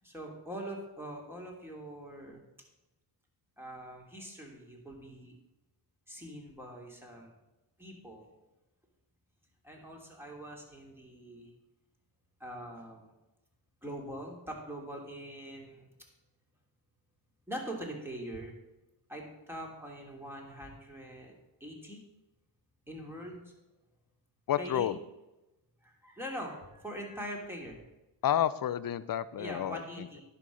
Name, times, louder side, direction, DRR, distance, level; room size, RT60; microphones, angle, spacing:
voice 1, 0.0-2.4 3.6-5.3 6.1-7.3 7.8-8.3 9.6-11.5 12.4-13.1 13.8-15.9 17.5-18.5 19.1-21.3 21.6-22.0 22.9-23.4 24.6-25.0 25.8-27.8 29.4-30.2, equal, 5° right, -1 dB, 2.9 m, -43 dB
voice 2, 24.5-25.0 28.2-29.8, left 10 dB, 45° left, 16 dB, 0.5 m, -30 dB
10.5 x 5.6 x 6.3 m, 0.99 s
cardioid pair, 75°, 47 cm